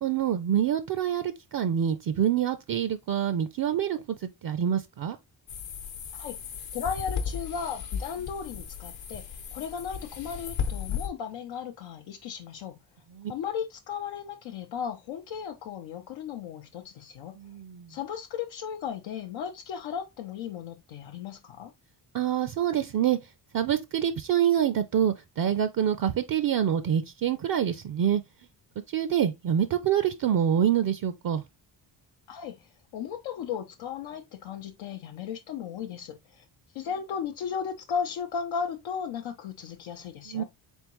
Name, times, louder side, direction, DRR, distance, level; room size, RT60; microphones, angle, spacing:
voice 1, 0.0-5.2 13.1-13.3 17.4-17.9 22.1-23.2 23.5-28.2 28.9-31.4 40.3-40.4, right 9 dB, 50° right, 0.5 m, -26 dB
sound 1, 5.5-11.1, left 7 dB, 70° left, 1.0 m, -35 dB
voice 2, 6.7-12.7 13.3-17.3 17.9-21.7 32.3-36.4 36.7-40.4, left 7 dB, 90° left, 0.6 m, -35 dB
3.7 x 3.5 x 2.9 m
cardioid pair, 85°, 45 cm